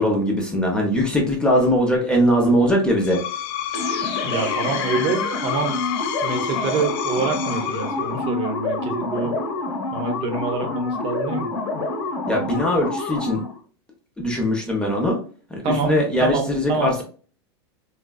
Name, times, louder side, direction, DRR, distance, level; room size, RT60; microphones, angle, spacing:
voice 1, 0.0-3.2 12.3-13.4 14.2-15.2 15.5-17.0, equal, 5° left, -1 dB, 0.7 m, -20 dB
Screech, 2.9-8.4, left 10 dB, 60° left, 0.4 m, -30 dB
sound 1, 3.7-13.6, left 3 dB, 75° left, 0.9 m, -27 dB
voice 2, 4.2-5.8 6.2-9.4 9.9-11.5 15.6-15.9 16.2-17.0, right 4 dB, 45° right, 5 dB, 0.8 m, -26 dB
3.8 x 2.2 x 2.2 m, 0.41 s
supercardioid pair, 125°, 14 cm